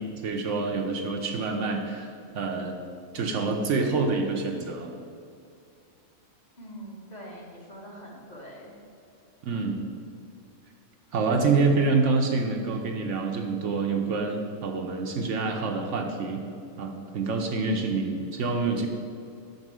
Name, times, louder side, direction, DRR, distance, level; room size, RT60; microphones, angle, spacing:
voice 1, 0.0-2.7 3.1-4.9 9.4-9.8 11.1-16.4 16.8-18.9, right 4 dB, 65° right, 2 dB, 1.0 m, -27 dB
voice 2, 6.6-8.7, equal, 35° left, -4 dB, 1.3 m, -43 dB
5.9 x 5.4 x 6.0 m, 2.4 s
omnidirectional pair, 1.4 m